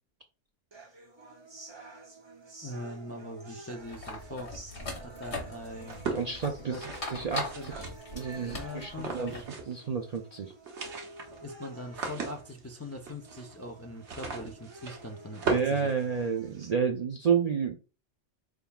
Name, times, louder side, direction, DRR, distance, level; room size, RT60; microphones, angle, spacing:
sound 1, 0.7-16.7, right 2 dB, 25° right, 0.7 m, -49 dB
voice 1, 2.6-4.7 5.0-6.0 6.6-6.8 7.5-8.0 8.4-9.4 11.4-15.9, left 1 dB, 25° left, 3 dB, 0.4 m, -42 dB
sound 2, 3.8-9.5, left 2 dB, 75° left, 1.6 m, -41 dB
sound 3, 5.8-8.3 8.9-9.9 10.1-10.2 10.5-16.7, right 4 dB, 80° right, 1.2 m, -38 dB
voice 2, 6.1-9.3 9.7-10.5 15.5-17.8, right 6 dB, 55° right, 4 dB, 0.4 m, -30 dB
4.5 x 3.6 x 2.3 m, 0.32 s
omnidirectional pair, 1.2 m